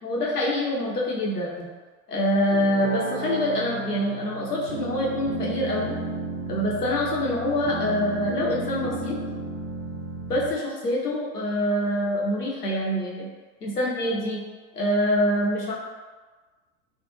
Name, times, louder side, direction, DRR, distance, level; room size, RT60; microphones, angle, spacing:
voice 1, 0.0-1.7 2.1-6.0 6.5-9.2 10.3-13.3 13.6-14.4 14.7-15.7, left 1 dB, 90° left, -3 dB, 0.6 m, -25 dB
sound 1, 2.5-10.5, right 2 dB, 55° right, 0.5 m, -33 dB
2.2 x 2.2 x 2.9 m, 1.3 s
figure-of-eight pair, 85°, 45 cm